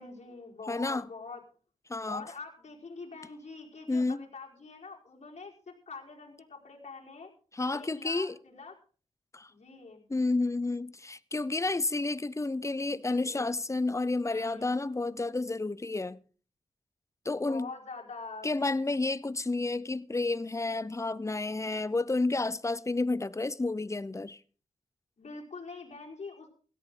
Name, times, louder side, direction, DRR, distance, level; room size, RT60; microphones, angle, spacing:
voice 1, 0.0-1.4 2.1-7.3 7.7-8.7 9.5-10.1 12.9-13.5 14.2-14.7 17.3-18.5 25.2-26.5, left 4 dB, 55° left, 5.0 m, -45 dB
voice 2, 0.7-1.1 1.9-2.3 3.9-4.2 7.5-8.4 9.3-9.5 10.1-16.2 17.2-17.7 18.4-24.4, left 3 dB, 20° left, 0.8 m, -30 dB
17.0 x 14.0 x 3.9 m
cardioid pair, 75°, 13 cm